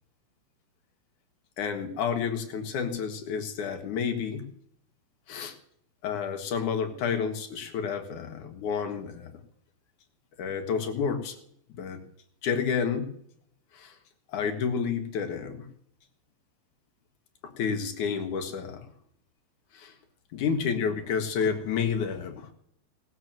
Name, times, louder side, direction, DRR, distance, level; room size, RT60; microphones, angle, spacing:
voice 1, 1.6-4.5 5.3-5.5 6.0-9.4 10.4-11.4 11.7-12.0 12.4-13.1 13.7-14.0 14.3-15.7 17.4-18.9 19.7-19.9 20.3-22.5, left 6 dB, 75° left, 5 dB, 3.1 m, -30 dB
18.5 x 8.1 x 7.6 m, 0.69 s
omnidirectional pair, 3.6 m